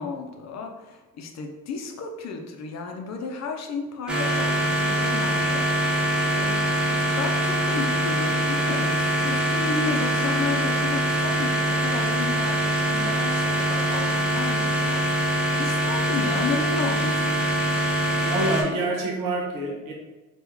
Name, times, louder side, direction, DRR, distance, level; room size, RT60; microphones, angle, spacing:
voice 1, 0.0-6.1 6.3-17.5, left 4 dB, 50° left, 3 dB, 0.6 m, -33 dB
sound 1, 4.1-18.6, equal, 5° right, 0.8 m, -23 dB
voice 2, 18.3-19.9, right 2 dB, 70° right, -2 dB, 1.1 m, -26 dB
3.0 x 2.4 x 3.5 m, 1.2 s
supercardioid pair, 65°, 34 cm